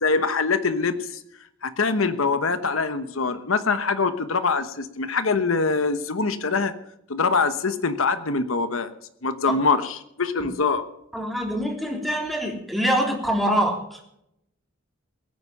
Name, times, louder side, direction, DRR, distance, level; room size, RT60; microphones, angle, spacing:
voice 1, 0.0-1.2 1.6-6.7 7.1-8.9 9.2-10.8, left 4 dB, 80° left, 11 dB, 1.1 m, -24 dB
voice 2, 11.1-14.0, equal, ahead, 1 dB, 3.3 m, -24 dB
22.0 x 9.6 x 5.7 m, 0.78 s
head